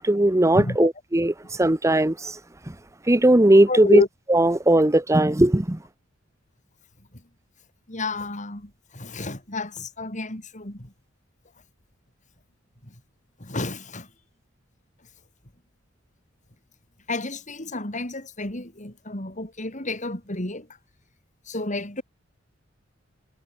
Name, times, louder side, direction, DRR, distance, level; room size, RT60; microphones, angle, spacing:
voice 1, 0.0-1.3 1.6-2.3 3.1-4.0 4.3-5.8, right 1 dB, 15° right, 0.9 m, -18 dB
voice 2, 0.6-0.9 3.7-4.1 7.9-10.9 12.8-12.9 13.4-14.1 17.1-20.7 21.5-22.0, left 2 dB, 40° left, 4.9 m, -29 dB
head